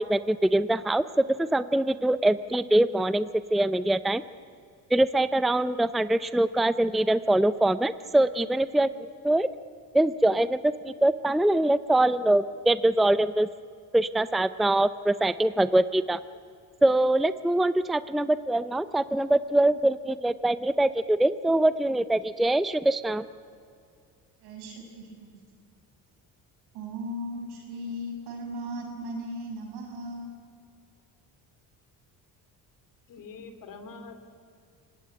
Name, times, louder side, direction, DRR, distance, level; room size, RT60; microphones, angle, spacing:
voice 1, 0.0-4.2 4.9-9.5 9.9-13.5 13.9-16.2 16.8-23.2, right 1 dB, ahead, 14 dB, 0.5 m, -23 dB
voice 2, 24.4-25.3 26.7-30.4, equal, 90° right, 1 dB, 7.0 m, -37 dB
voice 3, 33.1-34.3, left 4 dB, 60° left, 9 dB, 3.2 m, -44 dB
26.5 x 18.0 x 9.6 m, 2.3 s
cardioid pair, 110°, 37 cm